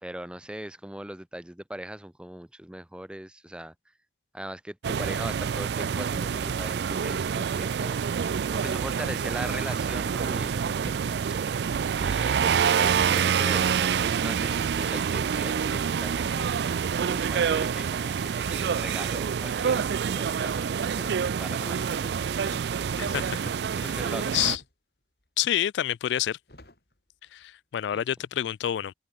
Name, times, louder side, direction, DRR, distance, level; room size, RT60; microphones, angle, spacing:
voice 1, 0.0-3.7 4.3-11.0 12.0-16.3 17.0-20.7 21.0-22.1 22.5-23.3 23.8-24.4 27.9-28.1, right 1 dB, 5° right, 0.5 m, -40 dB
sound 1, 4.8-24.6, right 7 dB, 75° right, 0.4 m, -27 dB
sound 2, 8.9-9.4 10.8-11.2 12.1-12.5 12.9-14.3 14.6-17.7 18.4-19.2 20.1-20.8 22.0-22.1 22.4-22.9 24.0-24.7 25.2-25.3 26.5-27.0 27.3-27.4 27.8-27.9, left 1 dB, 65° left, 4.0 m, -50 dB
sound 3, 9.4-24.5, right 2 dB, 40° right, 2.1 m, -54 dB
voice 2, 23.0-23.4 23.7-23.9 24.3-24.6 25.4-26.4 27.3-28.9, left 11 dB, 85° left, 0.3 m, -28 dB
open air
head